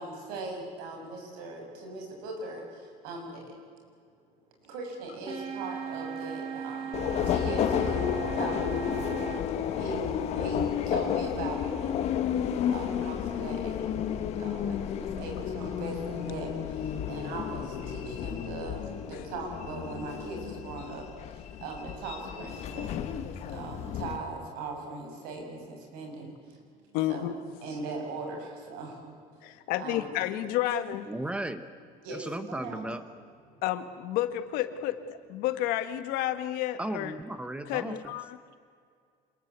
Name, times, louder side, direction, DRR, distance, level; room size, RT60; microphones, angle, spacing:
voice 1, 0.0-3.5 4.6-8.1 8.3-8.8 9.7-12.1 12.7-14.1 14.4-23.0 23.5-26.6 27.1-27.2 27.6-29.0 29.8-30.1 30.7-30.8 32.0-32.9 33.5-33.6, right 3 dB, 90° right, 2 dB, 6.6 m, -39 dB
sound 1, 5.3-9.4, right 7 dB, 40° right, 3.3 m, -37 dB
Subway metro underground, 6.9-24.2, left 9 dB, 45° left, 1.7 m, -32 dB
voice 2, 26.9-27.4 29.4-31.1 33.6-37.1 37.7-38.4, left 13 dB, 75° left, 10 dB, 1.7 m, -31 dB
voice 3, 31.1-31.6 32.1-33.0 36.8-38.1, right 1 dB, 10° right, 11 dB, 0.9 m, -35 dB
27.0 x 21.5 x 8.3 m, 2.2 s
cardioid pair, 175°, 15 cm